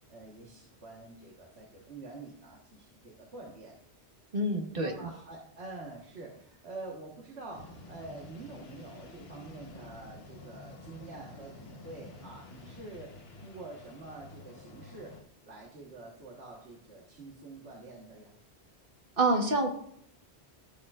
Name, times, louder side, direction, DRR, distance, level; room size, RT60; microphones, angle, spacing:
voice 1, 0.1-3.7 4.7-15.1 15.4-18.4, right 2 dB, 75° right, -2 dB, 1.7 m, -47 dB
voice 2, 4.3-5.1 19.2-19.7, right 2 dB, 55° right, 3 dB, 1.5 m, -27 dB
sound 1, 7.5-15.2, left 2 dB, 65° left, 1.3 m, -50 dB
16.0 x 6.7 x 2.4 m, 0.69 s
omnidirectional pair, 1.1 m